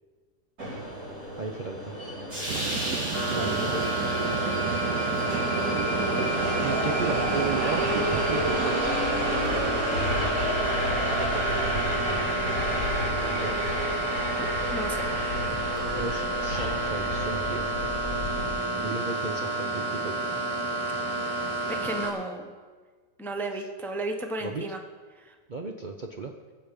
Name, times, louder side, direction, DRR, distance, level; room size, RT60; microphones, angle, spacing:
Subway metro underground, 0.6-18.5, equal, 60° right, 4.8 m, -30 dB
voice 1, 1.4-1.9 3.3-4.2 6.6-8.9 13.0-13.5 15.9-17.7 18.7-20.3 24.4-24.6 25.5-26.3, right 4 dB, 40° right, 2 dB, 0.7 m, -35 dB
sound 1, 2.5-8.8, right 10 dB, 85° right, 1.2 m, -34 dB
voice 2, 2.6-3.0 3.4-3.7 6.6-6.8 10.6-10.9 11.3-11.7 14.4-15.1 21.7-22.5 23.2-24.8 25.2-25.3, right 2 dB, ahead, 4 dB, 0.7 m, -35 dB
sound 2, 3.1-22.1, right 2 dB, 20° right, 2.7 m, -30 dB
20.5 x 7.8 x 5.2 m, 1.5 s
omnidirectional pair, 1.8 m